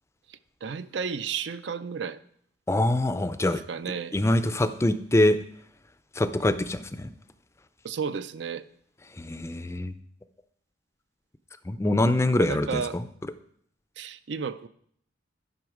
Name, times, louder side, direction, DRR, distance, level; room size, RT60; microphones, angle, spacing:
voice 1, 0.3-2.2 3.4-4.2 7.8-8.7 12.4-13.0 14.0-14.7, right 6 dB, 70° right, 0.5 m, -33 dB
voice 2, 2.7-3.6 4.1-5.4 6.2-7.1 9.2-9.9 11.7-13.0, left 1 dB, 15° left, 0.4 m, -24 dB
11.0 x 5.6 x 4.9 m
head